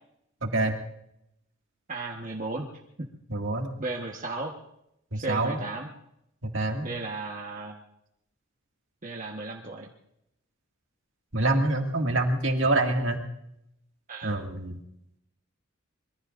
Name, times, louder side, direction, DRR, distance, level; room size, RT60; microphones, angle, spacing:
voice 1, 0.4-0.8 3.3-3.7 5.1-5.6 6.4-6.9 11.3-13.2 14.2-14.8, right 2 dB, 60° right, 2 dB, 2.2 m, -26 dB
voice 2, 1.9-2.7 3.0-3.1 3.8-4.5 5.1-5.9 6.8-7.7 9.0-9.9 14.1-14.3, right 2 dB, 40° right, 0 dB, 1.3 m, -35 dB
25.5 x 22.0 x 2.6 m, 0.79 s
head